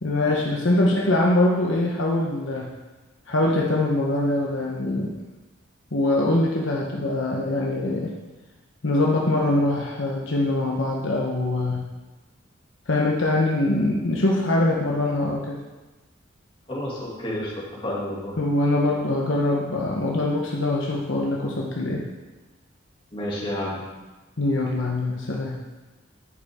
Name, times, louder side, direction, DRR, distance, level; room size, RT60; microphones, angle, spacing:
voice 1, 0.0-2.7 3.3-5.1 5.9-8.1 8.8-11.8 12.9-15.6 18.4-22.1 24.4-25.6, left 2 dB, 65° left, -2 dB, 1.1 m, -23 dB
voice 2, 16.7-18.4 23.1-23.8, left 1 dB, 25° left, -6 dB, 2.6 m, -30 dB
10.0 x 8.5 x 3.7 m, 1.2 s
head